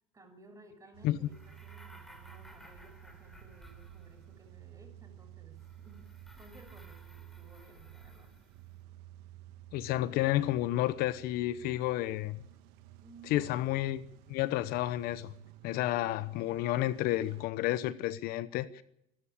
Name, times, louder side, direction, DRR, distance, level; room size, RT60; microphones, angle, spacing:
voice 1, 0.1-8.3 13.0-13.7, right 2 dB, 20° right, 6.3 m, -57 dB
Car / Engine starting / Idling, 0.9-17.5, right 13 dB, 70° right, 1.6 m, -53 dB
sound 1, 1.2-4.5 5.5-8.7, equal, ahead, 3.5 m, -57 dB
voice 2, 9.7-12.4 13.2-14.0 14.3-15.3 15.6-18.8, left 15 dB, 60° left, 1.0 m, -31 dB
26.0 x 12.5 x 8.7 m
supercardioid pair, 110°, 17 cm